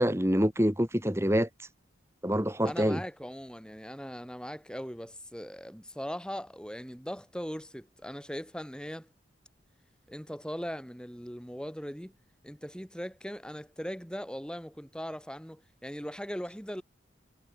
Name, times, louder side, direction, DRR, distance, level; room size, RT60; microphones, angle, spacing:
voice 1, 0.0-1.5 2.2-3.0, equal, 15° right, 3.4 m, -26 dB
voice 2, 2.6-9.1 10.1-12.1 12.4-16.8, equal, 5° left, 6.8 m, -39 dB
head